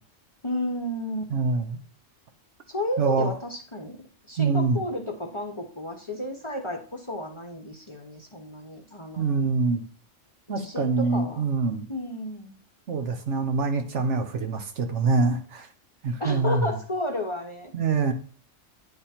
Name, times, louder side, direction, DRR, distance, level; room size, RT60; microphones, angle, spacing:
voice 1, 0.4-1.3 2.7-4.0 4.3-9.4 10.5-11.4 11.9-12.6 16.2-17.7, left 1 dB, 25° left, 1 dB, 0.8 m, -32 dB
voice 2, 1.3-1.8 3.0-3.3 4.4-4.8 9.2-9.8 10.5-11.9 12.9-15.7 16.0-16.7 17.7-18.1, right 4 dB, 65° right, 6 dB, 1.2 m, -25 dB
9.7 x 3.6 x 4.3 m, 0.41 s
omnidirectional pair, 1.3 m